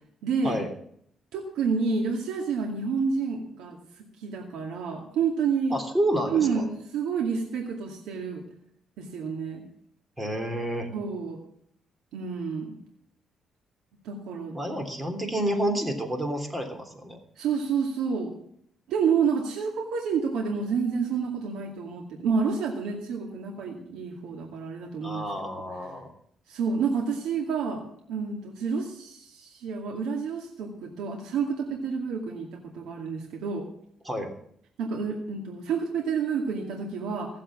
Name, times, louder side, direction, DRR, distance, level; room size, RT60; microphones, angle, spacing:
voice 1, 0.2-0.6 1.3-5.8 6.3-8.4 9.0-9.6 10.9-11.4 12.1-12.8 14.0-14.6 17.4-18.3 18.9-25.2 26.5-27.8 28.1-33.7 34.8-37.3, right 5 dB, 90° right, 0 dB, 2.3 m, -29 dB
voice 2, 5.7-6.7 10.2-10.9 14.5-17.2 25.0-26.1 34.0-34.3, right 1 dB, 15° right, 6 dB, 3.3 m, -29 dB
16.5 x 7.7 x 7.5 m, 0.67 s
cardioid pair, 90°, 0 cm